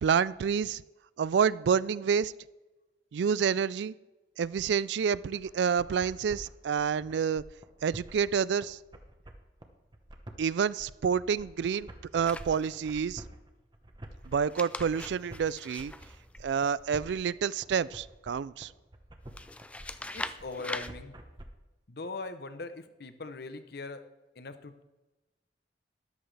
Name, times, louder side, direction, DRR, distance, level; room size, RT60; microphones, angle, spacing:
voice 1, 0.0-0.8 1.2-2.3 3.1-3.9 4.4-7.4 7.8-8.8 10.4-11.9 12.1-13.2 14.3-15.9 16.4-18.7, right 7 dB, 75° right, 19 dB, 0.3 m, -28 dB
sound 1, 5.3-21.5, right 1 dB, 25° right, 0.9 m, -48 dB
sound 2, 12.2-13.0 14.3-16.9 19.3-20.9, left 2 dB, 5° left, 0.3 m, -42 dB
voice 2, 20.0-21.1 21.9-24.1 24.4-24.8, left 3 dB, 60° left, 10 dB, 0.8 m, -41 dB
13.5 x 11.0 x 3.3 m, 1.1 s
head